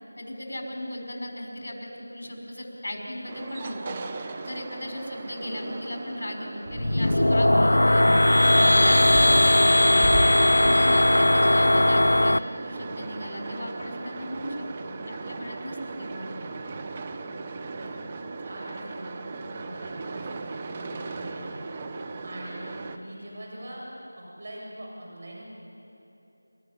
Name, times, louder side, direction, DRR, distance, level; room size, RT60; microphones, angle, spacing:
voice 1, 0.2-4.0 4.4-8.1 8.5-10.0 10.5-16.3, left 1 dB, 55° left, 1 dB, 5.4 m, -36 dB
sound 1, 3.3-23.0, right 3 dB, 20° right, 0.9 m, -38 dB
sound 2, 6.7-12.4, left 1 dB, 80° left, 0.5 m, -19 dB
sound 3, 8.4-10.7, equal, ahead, 1.9 m, -30 dB
voice 2, 16.2-16.6 17.7-21.6 22.2-23.9 24.2-25.4, right 1 dB, 45° right, -3 dB, 7.1 m, -43 dB
27.5 x 13.5 x 9.8 m, 3.0 s
figure-of-eight pair, 170°, 0 cm